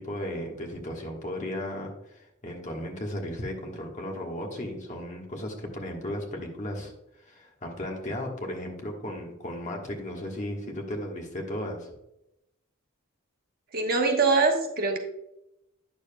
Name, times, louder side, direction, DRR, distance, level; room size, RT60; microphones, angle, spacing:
voice 1, 0.0-6.9 7.2-11.9, left 1 dB, 35° left, 1 dB, 1.3 m, -35 dB
voice 2, 13.7-15.0, right 4 dB, 45° right, 2 dB, 1.1 m, -23 dB
9.5 x 6.7 x 2.2 m, 0.86 s
head